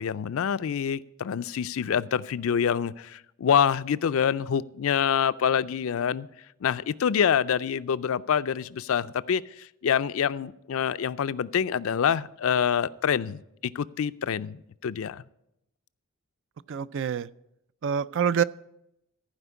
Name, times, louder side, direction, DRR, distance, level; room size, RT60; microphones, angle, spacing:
voice 1, 0.0-6.3 6.6-15.2, left 7 dB, 65° left, 16 dB, 0.4 m, -26 dB
voice 2, 16.7-17.3 17.8-18.4, right 7 dB, 60° right, 17 dB, 0.4 m, -26 dB
15.0 x 5.0 x 8.2 m, 0.82 s
head